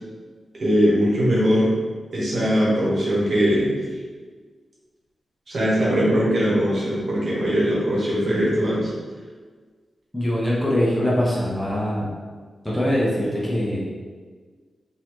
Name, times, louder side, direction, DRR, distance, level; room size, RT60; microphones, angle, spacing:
voice 1, 0.6-1.7 2.1-3.7 5.5-8.9, equal, 60° right, -7 dB, 1.3 m, -20 dB
voice 2, 10.1-12.1 12.6-13.8, equal, 5° left, -6 dB, 0.8 m, -22 dB
3.9 x 2.7 x 3.1 m, 1.5 s
wide cardioid pair, 130°, 0 cm